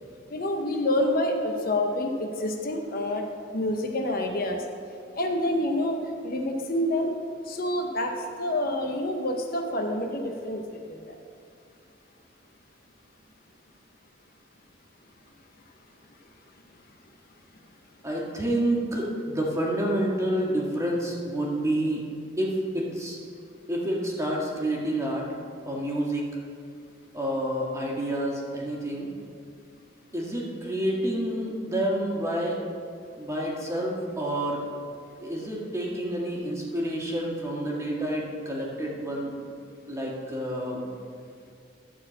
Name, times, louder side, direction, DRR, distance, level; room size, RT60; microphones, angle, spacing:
voice 1, 0.3-3.2 3.5-4.6 5.1-7.1 7.5-10.6 10.9-11.2, left 1 dB, 50° left, 3 dB, 0.9 m, -27 dB
voice 2, 18.0-22.0 22.4-23.2 23.7-25.3 25.6-26.3 27.1-29.1 30.1-32.6 33.2-34.6 35.2-39.6 39.9-40.9, right 1 dB, 15° right, -3 dB, 1.7 m, -29 dB
12.5 x 4.4 x 7.4 m, 2.3 s
head